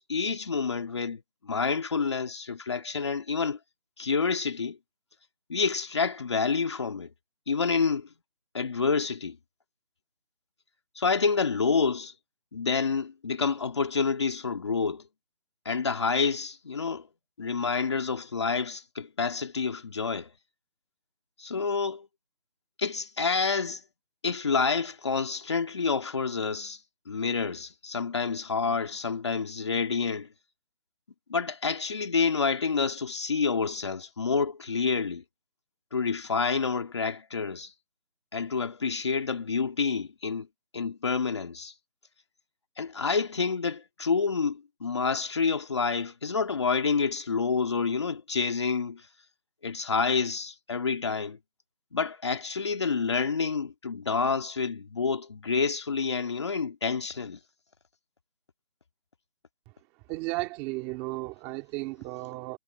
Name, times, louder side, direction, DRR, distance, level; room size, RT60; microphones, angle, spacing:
voice 1, 0.0-3.6 4.0-4.8 5.5-7.1 7.5-8.1 8.5-9.4 11.0-12.1 12.5-15.0 15.7-17.1 17.4-20.3 21.4-22.1 22.8-23.8 24.2-26.8 27.1-30.3 31.3-35.2 35.9-37.7 38.3-40.5 40.7-41.7 42.8-49.1 49.6-51.4 51.9-57.4, left 5 dB, 25° left, 2.2 m, -28 dB
voice 2, 60.1-62.6, right 21 dB, 5° right, 2.3 m, -34 dB
figure-of-eight pair, 175°, 32 cm